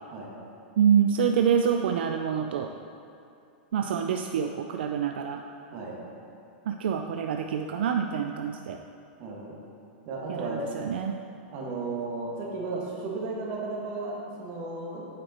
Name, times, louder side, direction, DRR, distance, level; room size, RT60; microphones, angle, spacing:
voice 1, 0.8-2.7 3.7-5.4 6.7-8.8 10.3-11.2, right 8 dB, 80° right, 4 dB, 0.4 m, -26 dB
voice 2, 9.2-9.6 10.1-10.7 11.5-15.1, right 3 dB, 45° right, -3 dB, 1.7 m, -34 dB
8.4 x 5.6 x 4.3 m, 2.6 s
supercardioid pair, 140°, 6 cm